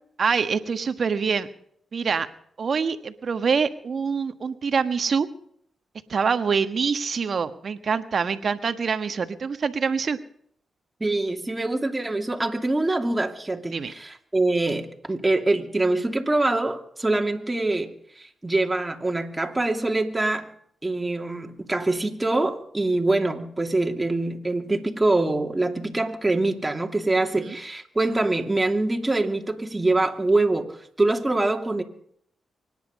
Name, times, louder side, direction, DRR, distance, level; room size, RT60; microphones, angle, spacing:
voice 1, 0.2-1.5 1.9-2.3 2.6-5.3 6.1-10.2 13.7-13.9 27.4-27.6, right 5 dB, 60° right, 9 dB, 1.4 m, -25 dB
voice 2, 11.0-17.9 18.2-20.5 20.8-31.8, right 2 dB, 20° right, 3 dB, 2.7 m, -24 dB
24.5 x 10.5 x 5.4 m, 0.65 s
supercardioid pair, 45°, 0 cm